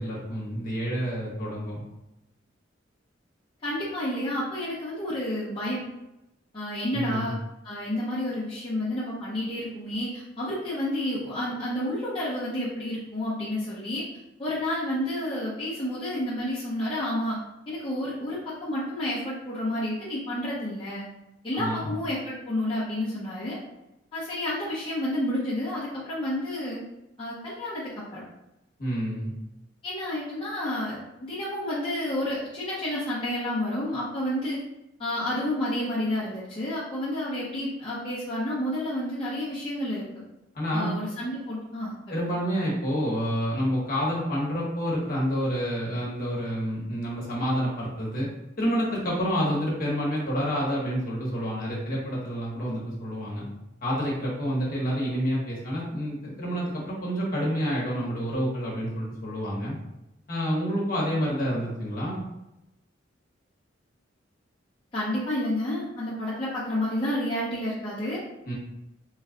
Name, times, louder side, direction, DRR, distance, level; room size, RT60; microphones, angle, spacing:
voice 1, 0.0-1.8 6.9-7.3 21.5-21.9 28.8-29.3 40.5-40.9 42.1-48.3 48.6-53.5 53.8-59.8 60.3-62.2 68.5-68.6, equal, 50° left, -4 dB, 1.1 m, -28 dB
voice 2, 3.6-5.9 6.5-7.3 7.6-14.0 14.4-17.4 17.7-21.1 21.4-23.6 24.1-26.8 27.2-28.2 29.8-34.6 35.0-40.0 40.7-42.4 64.9-68.2, left 1 dB, 25° left, -9 dB, 0.7 m, -30 dB
3.1 x 2.3 x 3.7 m, 0.92 s
head